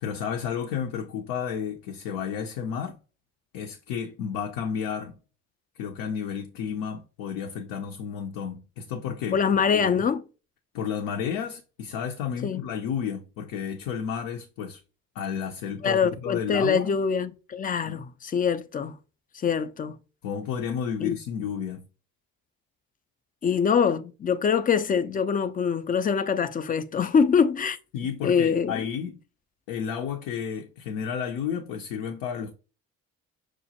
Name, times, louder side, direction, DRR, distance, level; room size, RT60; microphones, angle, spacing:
voice 1, 0.0-3.0 3.5-5.2 5.8-10.1 10.7-14.8 15.1-17.0 17.9-18.0 20.2-21.9 27.9-29.2 29.7-32.6, left 7 dB, 75° left, 0.6 m, -32 dB
voice 2, 9.3-10.2 12.4-12.6 15.8-19.0 19.4-20.0 21.0-21.2 23.4-27.8 28.2-28.8, left 6 dB, 25° left, 0.3 m, -24 dB
6.0 x 2.1 x 2.8 m
hypercardioid pair, 45°, 40 cm